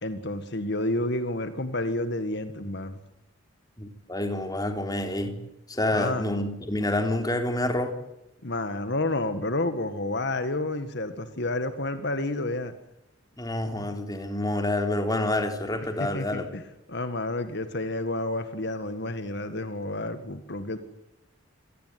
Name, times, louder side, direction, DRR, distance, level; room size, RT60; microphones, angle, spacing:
voice 1, 0.0-3.0 5.9-6.2 8.4-12.7 16.0-16.6 16.9-20.8, left 2 dB, 60° left, 10 dB, 1.8 m, -30 dB
voice 2, 3.8-5.4 5.7-8.0 13.4-16.5, left 1 dB, 20° left, 6 dB, 3.6 m, -28 dB
27.5 x 19.0 x 9.5 m, 0.89 s
head